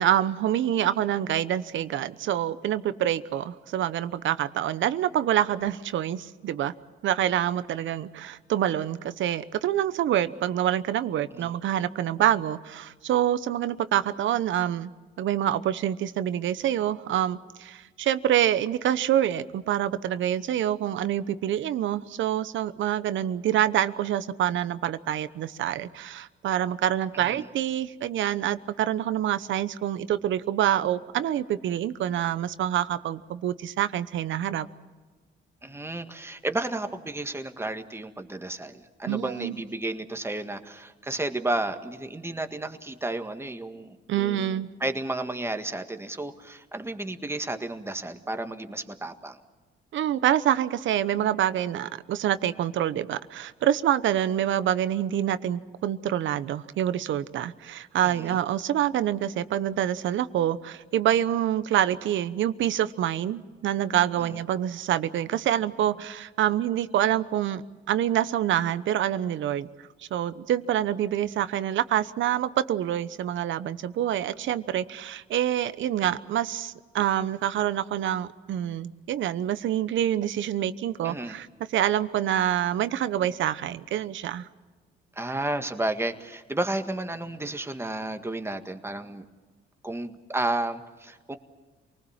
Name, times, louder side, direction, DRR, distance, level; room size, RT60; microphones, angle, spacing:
voice 1, 0.0-6.7 7.0-14.9 15.2-34.7 39.1-39.5 44.1-44.7 49.9-69.7 70.1-81.5 81.7-84.5, right 11 dB, 75° right, 14 dB, 1.0 m, -26 dB
voice 2, 27.1-27.5 35.6-49.4 58.0-58.4 64.2-64.4 81.0-81.4 85.2-89.3 89.8-91.4, right 2 dB, 10° right, 7 dB, 1.8 m, -32 dB
28.0 x 20.0 x 7.4 m, 1.4 s
cardioid pair, 90°, 20 cm